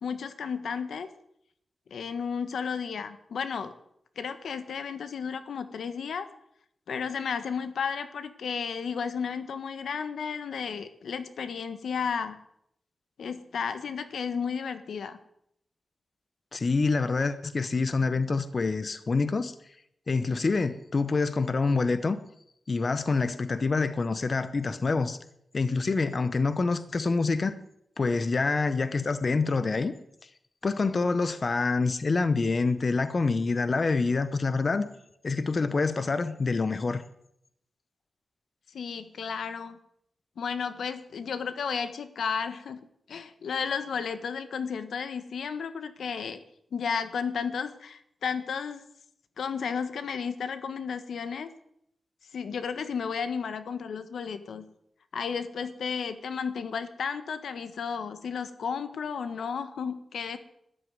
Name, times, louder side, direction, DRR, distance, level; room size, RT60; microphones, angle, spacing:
voice 1, 0.0-1.1 1.9-3.7 4.1-6.3 6.9-12.4 13.2-15.2 38.7-39.8 40.4-46.4 46.7-48.8 49.4-51.5 52.3-54.6 55.1-60.4, left 6 dB, 85° left, 11 dB, 1.5 m, -33 dB
voice 2, 16.5-19.5 20.1-22.2 22.7-25.2 25.5-27.5 28.0-29.9 30.6-34.9 35.2-37.0, left 4 dB, 35° left, 12 dB, 0.8 m, -26 dB
13.5 x 11.5 x 9.6 m, 0.74 s
wide cardioid pair, 175°, 0 cm